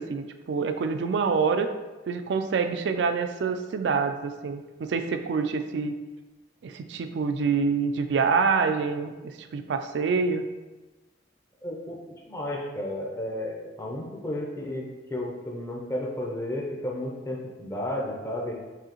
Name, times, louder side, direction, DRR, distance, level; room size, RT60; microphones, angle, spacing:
voice 1, 0.0-1.7 2.1-5.9 6.6-9.1 9.4-10.5, right 5 dB, 70° right, 8 dB, 0.3 m, -26 dB
voice 2, 11.6-12.0 12.3-18.6, left 1 dB, 15° left, -2 dB, 0.5 m, -33 dB
4.8 x 2.7 x 3.0 m, 1.2 s
head